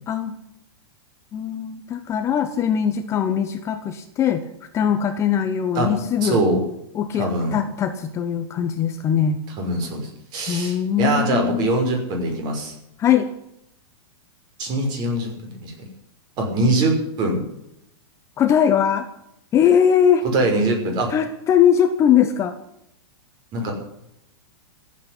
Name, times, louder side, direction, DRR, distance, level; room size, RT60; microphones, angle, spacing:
voice 1, 0.1-0.4 1.3-4.5 4.7-6.4 6.9-9.4 10.5-11.7 13.0-13.3 18.4-19.1 19.5-20.2 21.1-22.6, left 8 dB, 20° left, 8 dB, 1.0 m, -20 dB
voice 2, 6.2-6.6 7.2-7.6 9.6-12.7 14.6-15.3 15.6-15.7 16.4-17.4 20.3-21.1 23.5-23.7, right 2 dB, 30° right, 3 dB, 5.9 m, -22 dB
15.0 x 8.6 x 9.9 m, 0.80 s
supercardioid pair, 155°, 13 cm